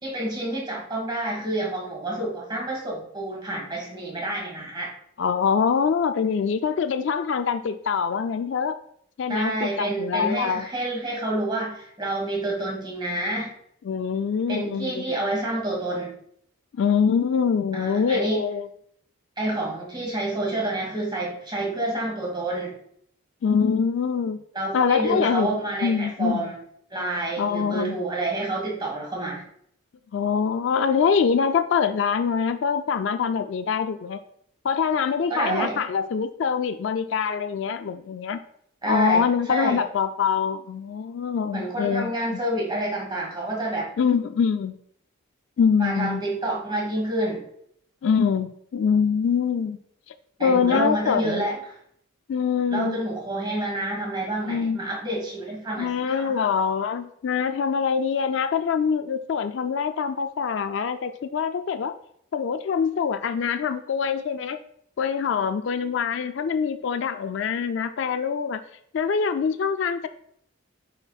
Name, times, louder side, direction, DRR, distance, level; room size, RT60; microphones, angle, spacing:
voice 1, 0.0-4.9 9.3-13.5 14.5-16.1 17.7-18.4 19.4-22.7 24.5-26.6 26.9-29.4 35.3-35.8 38.8-39.2 39.5-39.8 41.5-43.9 45.8-47.4 50.4-51.6 52.7-56.3, right 1 dB, 20° right, -2 dB, 1.5 m, -28 dB
voice 2, 5.2-8.8 9.2-10.7 13.8-15.2 16.8-18.7 23.4-24.4 24.7-26.5 27.4-28.0 30.1-34.2 34.6-38.4 38.9-42.4 44.0-44.8 45.6-46.2 48.0-49.8 50.4-51.4 52.3-53.0 54.4-54.9 55.8-61.9 62.3-64.6 65.0-68.6 68.9-70.1, left 6 dB, 60° left, 9 dB, 0.3 m, -24 dB
9.6 x 4.4 x 2.3 m, 0.68 s
head